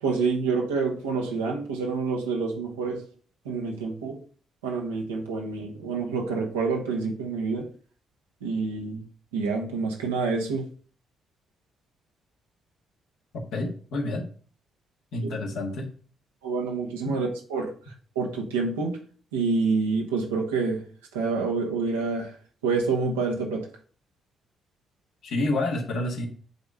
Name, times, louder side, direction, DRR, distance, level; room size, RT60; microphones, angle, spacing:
voice 1, 0.0-3.0 3.4-4.2 4.6-7.7 8.4-9.0 9.3-10.7 16.4-17.7 18.1-19.0 19.3-20.8 21.1-22.3 22.6-23.7, right 4 dB, 90° right, 1 dB, 1.2 m, -27 dB
voice 2, 13.5-14.2 15.1-15.9 25.2-26.3, left 2 dB, 70° left, 1 dB, 1.6 m, -28 dB
7.9 x 3.5 x 5.4 m, 0.42 s
hypercardioid pair, 45°, 0 cm